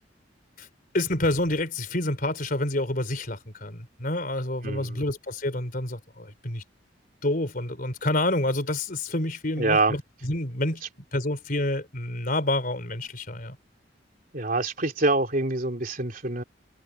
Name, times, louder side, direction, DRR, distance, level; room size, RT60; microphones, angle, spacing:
voice 1, 0.9-6.6 7.2-10.8 11.1-13.6, left 1 dB, 50° left, 4.0 m, -28 dB
voice 2, 4.6-5.0 9.6-9.9 14.3-16.4, right 2 dB, 50° right, 3.4 m, -25 dB
head